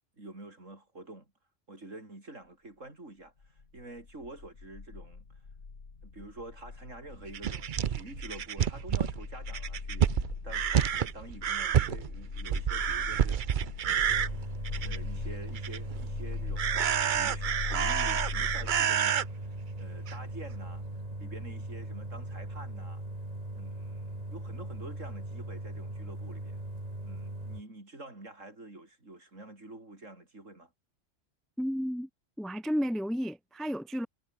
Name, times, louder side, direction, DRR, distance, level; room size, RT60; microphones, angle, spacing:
voice 1, 0.2-1.3 1.7-5.2 6.0-14.3 14.8-19.5 19.8-20.8 21.2-23.0 23.5-26.6 27.0-30.7, right 2 dB, 80° right, 6.2 m, -48 dB
sound 1, 3.4-18.9, left 4 dB, 85° left, 2.8 m, -40 dB
sound 2, 7.3-15.2 15.5-16.1 16.6-19.2 20.1-20.2 20.5-20.6, right 9 dB, 50° right, 0.7 m, -29 dB
sound 3, 14.1-27.6, right 1 dB, 30° right, 4.4 m, -40 dB
voice 2, 31.6-32.1 32.4-34.1, equal, ahead, 0.7 m, -32 dB
omnidirectional pair, 1.3 m